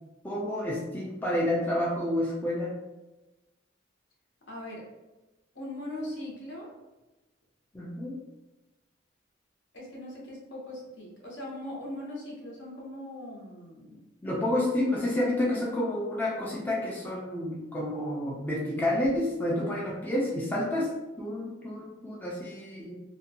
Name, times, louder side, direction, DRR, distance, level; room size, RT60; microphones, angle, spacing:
voice 1, 0.2-2.7 7.7-8.2 14.2-22.9, left 1 dB, 10° left, -4 dB, 0.3 m, -29 dB
voice 2, 4.5-4.9 5.5-6.7 9.7-14.0, left 1 dB, 70° left, -3 dB, 0.8 m, -40 dB
2.6 x 2.2 x 2.7 m, 1.1 s
head